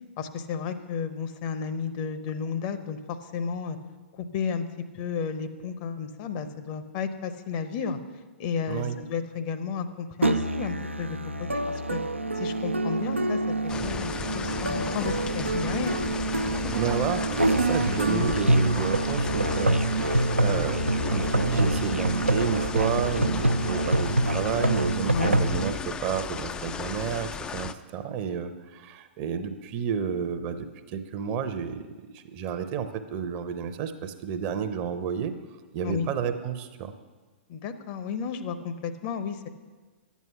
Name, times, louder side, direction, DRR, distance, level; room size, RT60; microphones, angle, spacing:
voice 1, 0.2-3.8 4.2-4.7 4.9-8.0 8.4-11.6 11.9-12.0 12.4-16.0 18.1-18.3 25.1-25.4 35.8-36.1 37.5-39.5, left 6 dB, 35° left, 10 dB, 0.7 m, -32 dB
Musical instrument, 10.2-25.7, right 2 dB, 85° right, 0.5 m, -26 dB
sound 1, 13.7-27.7, left 6 dB, 15° left, 0.3 m, -35 dB
voice 2, 16.7-31.9 32.1-35.3 35.7-36.9, right 7 dB, 35° right, 9 dB, 0.7 m, -31 dB
11.0 x 8.3 x 5.7 m, 1.3 s
figure-of-eight pair, 110°, 6 cm